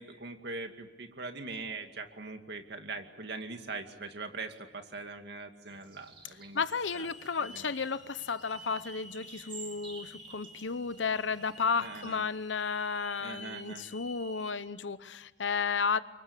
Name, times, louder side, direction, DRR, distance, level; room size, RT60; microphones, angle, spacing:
voice 1, 0.0-6.6 6.9-7.1 7.5-7.7 11.8-12.2 13.2-13.9, right 3 dB, 60° right, 6 dB, 2.3 m, -42 dB
sound 1, 5.7-12.2, right 4 dB, 30° right, 3.6 m, -52 dB
voice 2, 6.5-16.0, left 5 dB, 90° left, 14 dB, 0.9 m, -33 dB
Hiss / Alarm, 6.8-14.5, equal, ahead, 5.7 m, -51 dB
29.0 x 24.0 x 8.3 m, 1.1 s
head